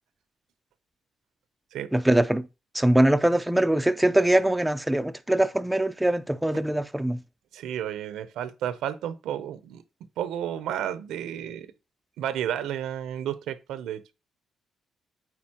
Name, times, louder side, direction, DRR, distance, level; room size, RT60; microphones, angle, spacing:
voice 1, 1.9-2.5 2.7-7.2, right 1 dB, 5° right, 0.4 m, -22 dB
voice 2, 7.5-9.8 10.2-11.7 12.2-14.0, right 10 dB, 85° right, 0.6 m, -32 dB
8.9 x 4.0 x 2.9 m
cardioid pair, 90°, 0 cm